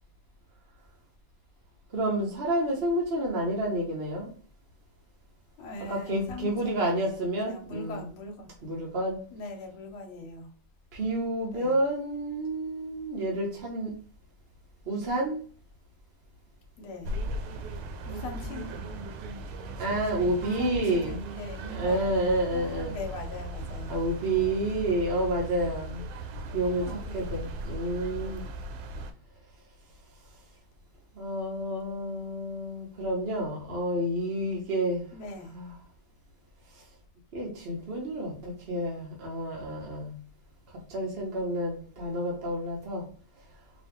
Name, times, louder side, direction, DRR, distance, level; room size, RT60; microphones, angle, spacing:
voice 1, 1.9-4.3 5.9-8.1 8.6-9.2 10.9-13.9 14.9-15.4 19.8-21.2 21.6-22.9 23.9-26.0 26.5-28.5 31.1-35.1 35.5-35.8 36.7-36.8 37.3-40.1 40.9-43.1, right 1 dB, 45° right, 0.8 m, -29 dB
voice 2, 5.6-8.5 9.3-10.5 11.5-11.8 16.8-17.1 18.1-18.9 20.4-22.2 22.5-24.0 26.8-27.4 35.1-35.5, left 3 dB, 85° left, 1.7 m, -40 dB
sound 1, 17.0-29.1, right 1 dB, 90° right, 1.5 m, -38 dB
4.9 x 2.3 x 3.5 m
omnidirectional pair, 2.3 m